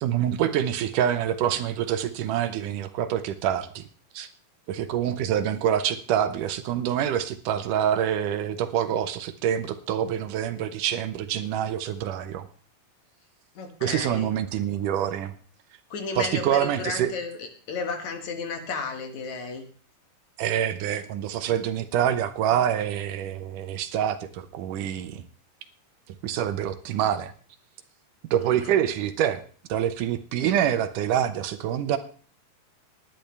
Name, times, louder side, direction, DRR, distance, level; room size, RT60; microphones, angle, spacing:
voice 1, 0.0-3.8 4.1-4.3 4.7-12.5 13.8-15.3 16.2-17.1 20.4-25.2 26.2-27.3 28.3-29.4 29.7-32.0, right 10 dB, 75° right, 10 dB, 2.4 m, -26 dB
voice 2, 13.5-14.3 15.9-19.6 28.4-28.7, left 4 dB, 60° left, 5 dB, 2.9 m, -33 dB
19.0 x 10.5 x 3.3 m, 0.43 s
omnidirectional pair, 3.8 m